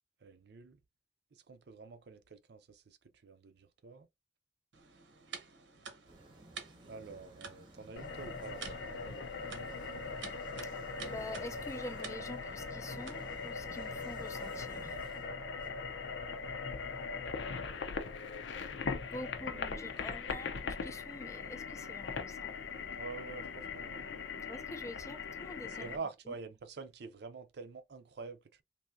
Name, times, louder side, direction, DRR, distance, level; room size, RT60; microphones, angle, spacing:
voice 1, 0.2-0.8 1.5-3.0 3.2-4.1 6.8-10.0 19.2-19.8 23.0-24.3 25.7-28.6, right 4 dB, 65° right, 0.5 m, -47 dB
sound 1, 4.7-13.5, right 5 dB, 90° right, 0.9 m, -51 dB
sound 2, 6.1-15.7, right 2 dB, 25° right, 0.7 m, -56 dB
sound 3, 8.0-26.0, left 5 dB, 85° left, 0.6 m, -40 dB
voice 2, 11.0-14.9 19.1-22.5 24.5-25.9, left 1 dB, 15° left, 0.4 m, -46 dB
3.4 x 2.6 x 2.5 m
head